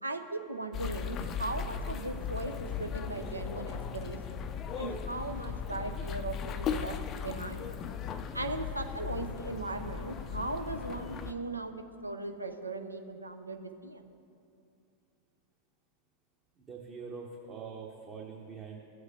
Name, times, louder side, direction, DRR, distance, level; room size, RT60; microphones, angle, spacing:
voice 1, 0.0-4.5 4.8-7.8 8.3-11.7 12.0-14.0, right 2 dB, 85° right, 5 dB, 0.6 m, -38 dB
sound 1, 0.7-11.3, left 7 dB, 30° left, 0.4 m, -37 dB
voice 2, 16.6-18.8, right 5 dB, 25° right, 0 dB, 1.0 m, -44 dB
16.0 x 7.9 x 2.7 m, 2.5 s
figure-of-eight pair, 90°, 0 cm